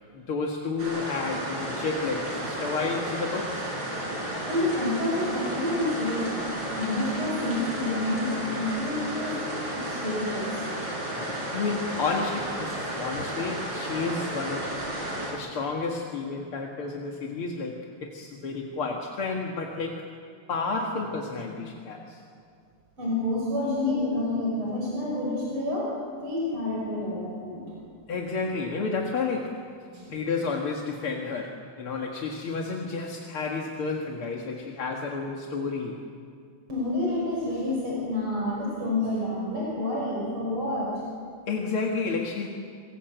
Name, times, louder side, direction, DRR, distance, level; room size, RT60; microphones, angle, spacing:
voice 1, 0.1-3.7 11.1-14.8 15.3-20.1 20.5-22.2 28.1-29.6 30.1-36.0 41.5-42.5, left 4 dB, 75° left, 0 dB, 2.7 m, -31 dB
sound 1, 0.8-15.3, right 1 dB, 55° right, 6.2 m, -33 dB
voice 2, 4.4-10.6 23.0-25.9 26.2-27.7 29.9-30.1 36.7-40.9, left 1 dB, 75° right, -4 dB, 6.8 m, -29 dB
27.0 x 21.5 x 8.1 m, 2.3 s
omnidirectional pair, 2.4 m